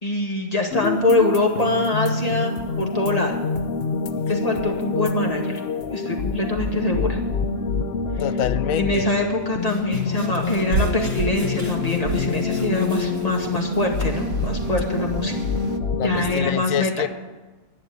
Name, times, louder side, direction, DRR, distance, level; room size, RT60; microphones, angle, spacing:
voice 1, 0.0-3.4 4.3-5.6 5.9-7.2 8.8-15.4 16.0-17.1, left 2 dB, 25° left, 1 dB, 2.0 m, -24 dB
sound 1, 0.7-16.5, left 4 dB, 50° left, 0.9 m, -26 dB
voice 2, 8.2-9.1 16.0-17.1, left 10 dB, 75° left, 14 dB, 1.0 m, -26 dB
sound 2, 9.2-15.1, right 1 dB, 10° left, 2.5 m, -42 dB
sound 3, 10.5-15.8, right 5 dB, 80° right, 1.2 m, -31 dB
11.0 x 11.0 x 9.5 m, 1.2 s
omnidirectional pair, 1.4 m